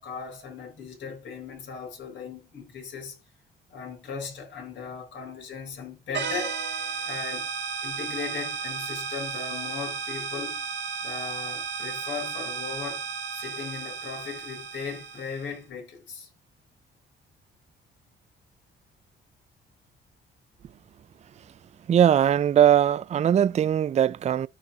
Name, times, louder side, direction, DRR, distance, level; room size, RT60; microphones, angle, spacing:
voice 1, 0.0-3.2 3.7-6.6 7.0-7.5 7.8-10.6 11.0-13.1 13.3-16.3, left 5 dB, 65° left, 4.2 m, -38 dB
sound 1, 6.1-15.5, right 6 dB, 65° right, 1.5 m, -34 dB
voice 2, 21.9-24.5, right 10 dB, 35° right, 0.4 m, -20 dB
13.5 x 4.6 x 2.4 m
cardioid pair, 90°, 20 cm